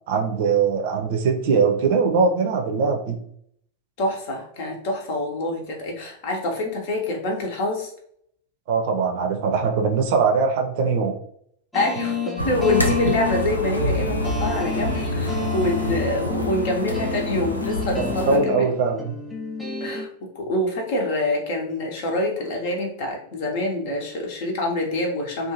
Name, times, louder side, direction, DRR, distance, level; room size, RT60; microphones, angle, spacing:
voice 1, 0.1-3.2 8.7-11.1 18.0-19.1, right 5 dB, 50° right, 3 dB, 0.5 m, -21 dB
voice 2, 4.0-7.9 11.7-18.5 19.8-20.1 20.3-25.5, left 1 dB, 50° left, 1 dB, 0.8 m, -26 dB
sound 1, 11.7-20.1, left 4 dB, 5° left, 0.5 m, -30 dB
sound 2, 12.4-18.4, left 1 dB, 80° left, 0.4 m, -27 dB
2.6 x 2.4 x 2.8 m, 0.65 s
figure-of-eight pair, 90°, 0 cm